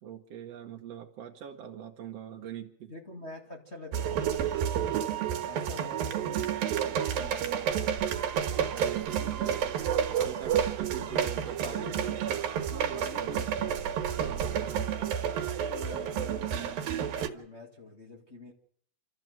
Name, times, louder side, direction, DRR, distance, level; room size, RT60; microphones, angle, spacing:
voice 1, 0.0-2.9 8.7-9.9 10.2-12.0 13.2-13.4 14.2-14.9, right 10 dB, 60° right, 2 dB, 1.9 m, -43 dB
voice 2, 2.9-4.6 5.4-8.0 9.2-9.3 10.1-10.2 11.0-13.8 15.7-18.5, left 1 dB, 25° left, 0 dB, 1.7 m, -46 dB
sound 1, 3.9-17.3, right 9 dB, 85° right, 3.2 m, -30 dB
27.0 x 14.0 x 7.8 m, 0.65 s
omnidirectional pair, 4.1 m